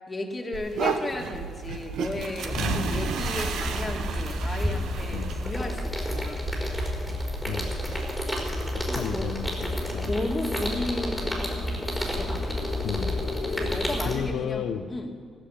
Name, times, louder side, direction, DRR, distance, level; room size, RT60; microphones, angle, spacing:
voice 1, 0.1-6.5 8.4-9.4 10.0-12.8 13.5-15.1, left 2 dB, 25° left, 2 dB, 2.3 m, -35 dB
sound 1, 0.5-8.8, right 6 dB, 75° right, 1.1 m, -34 dB
sound 2, 2.4-14.2, equal, ahead, 4.4 m, -30 dB
voice 2, 2.6-3.1 5.1-5.4 7.5-8.0 8.7-10.1 12.8-13.3 14.1-14.9, left 8 dB, 75° left, 7 dB, 0.6 m, -33 dB
sound 3, 4.4-4.5 4.8-13.8, left 5 dB, 55° left, 1.6 m, -42 dB
15.0 x 7.8 x 9.8 m, 2.1 s
cardioid pair, 90°, 0 cm